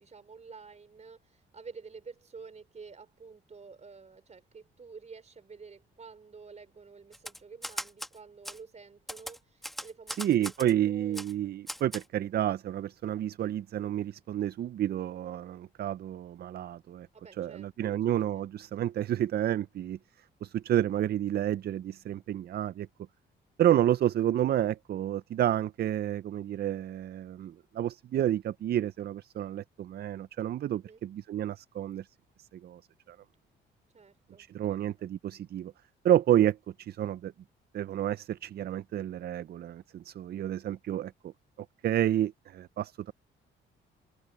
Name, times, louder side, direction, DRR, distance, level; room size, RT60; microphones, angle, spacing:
voice 1, 0.0-11.2 17.1-18.2 30.7-31.0 33.9-35.1, right 5 dB, 35° right, 4.3 m, -50 dB
Typewriter, 7.1-8.1 8.5-8.6 9.1-10.7 11.1-11.3 11.7-12.1, equal, ahead, 1.6 m, -39 dB
voice 2, 10.2-17.1 17.4-20.0 20.4-22.9 23.6-32.1 32.4-32.8 33.1-33.2 34.4-35.7 36.0-37.3 37.7-41.3 41.8-43.1, right 11 dB, 55° right, 0.5 m, -30 dB
cardioid pair, 90°, 20 cm